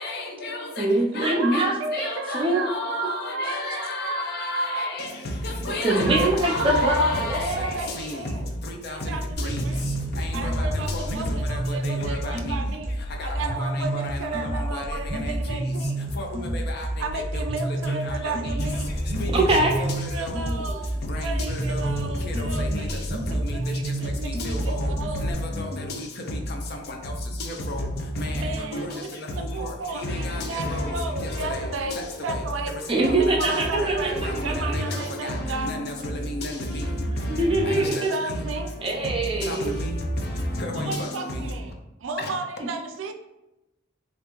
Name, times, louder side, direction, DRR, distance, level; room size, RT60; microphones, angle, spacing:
voice 1, 0.0-0.8 1.2-1.6 1.9-5.1 5.6-7.5 8.0-8.1 8.8-8.9 9.4-9.6 10.4-10.5 11.8-12.2 13.2-13.3 13.9-14.0 14.7-14.8 16.2-16.3 16.5-16.6 19.2-19.5 19.8-19.9 21.1-21.2 21.5-21.9 22.2-22.8 24.5-24.9 25.2-25.8 27.7-27.9 28.2-28.3 28.7-28.9 29.4-29.5 30.0-30.9 31.2-31.6 33.0-33.1 33.5-33.6 34.2-35.0 35.2-35.4 35.6-35.9 36.3-36.5 36.8-36.9 37.7-38.0 39.4-39.9 40.6-40.9, left 1 dB, 55° left, 0.5 m, -30 dB
voice 2, 0.8-2.6 5.8-8.2 19.3-19.7 32.9-34.1 34.4-34.7 37.3-38.1 38.8-39.7, right 2 dB, 30° right, 0.6 m, -23 dB
voice 3, 1.3-5.0 5.9-6.3 6.6-7.2 7.7-8.6 8.9-10.0 10.3-16.0 17.0-18.9 19.3-19.8 20.1-25.3 28.2-35.7 38.1-38.7 40.7-43.1, right 3 dB, 75° right, 0.4 m, -33 dB
sound 1, 9.3-25.3, right 1 dB, 45° right, 1.1 m, -29 dB
3.4 x 2.5 x 3.0 m
head